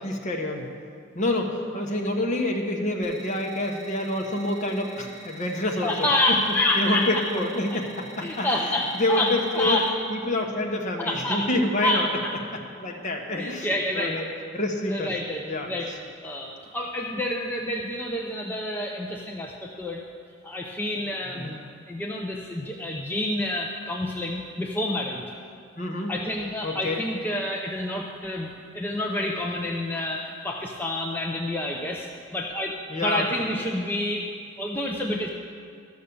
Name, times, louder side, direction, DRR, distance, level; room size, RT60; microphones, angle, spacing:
voice 1, 0.0-0.6 1.1-6.1 6.8-9.8 10.1-12.1 12.8-14.3 14.5-15.1 15.4-15.7 21.3-21.7 25.8-26.1 26.6-27.0 32.9-33.3, left 1 dB, 35° left, 2 dB, 1.1 m, -27 dB
sound 1, 3.0-9.9, right 1 dB, 65° right, 1.3 m, -46 dB
voice 2, 5.8-7.2 8.2-9.3 9.5-9.8 11.0-11.4 11.8-12.3 13.3-14.4 14.9-15.9 16.2-20.0 20.4-21.6 21.9-25.2 26.1-32.1 32.3-32.7 33.0-34.2 34.6-35.3, left 1 dB, 10° left, -1 dB, 0.6 m, -28 dB
12.5 x 6.4 x 7.0 m, 2.3 s
head